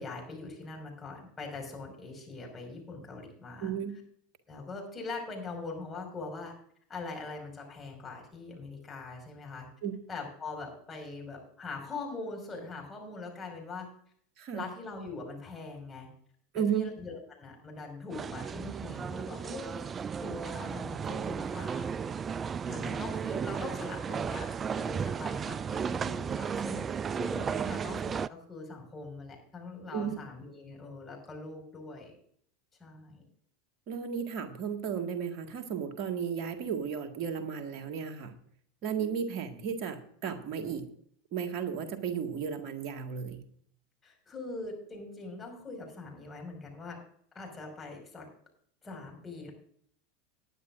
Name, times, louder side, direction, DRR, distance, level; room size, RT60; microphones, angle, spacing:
voice 1, 0.0-3.7 4.5-6.5 6.9-9.7 10.1-13.9 14.5-16.1 16.5-19.9 20.2-21.9 22.6-26.8 27.1-32.1 32.8-33.2 44.0-47.0 47.4-48.3 48.8-49.5, left 3 dB, 20° left, 1 dB, 5.3 m, -42 dB
voice 2, 3.6-4.0 9.8-10.0 14.4-14.7 16.5-16.9 29.9-30.2 33.9-38.4 38.8-40.9 41.3-43.4, right 7 dB, 50° right, 5 dB, 1.8 m, -34 dB
sound 1, 18.1-28.3, right 6 dB, 25° right, 0.3 m, -34 dB
20.0 x 9.8 x 2.6 m, 0.63 s
hypercardioid pair, 85°, 0 cm